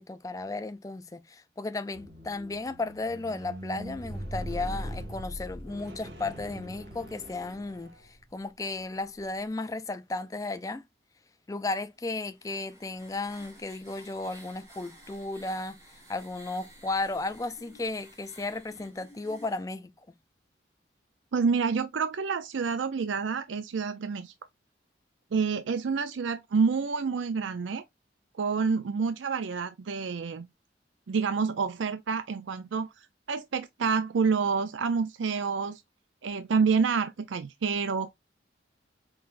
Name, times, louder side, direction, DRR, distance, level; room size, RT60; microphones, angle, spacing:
voice 1, 0.0-10.8 11.5-15.8 16.1-19.9, left 2 dB, 20° left, 0.4 m, -34 dB
Squeak, 1.9-8.3 9.0-9.2, equal, 60° right, 1.9 m, -40 dB
sound 1, 12.1-19.6, equal, 15° right, 1.4 m, -54 dB
voice 2, 21.3-24.3 25.3-27.8 28.4-30.5 31.1-32.9 33.3-35.8 36.2-38.1, right 5 dB, 90° right, 0.5 m, -28 dB
4.5 x 3.8 x 2.5 m
head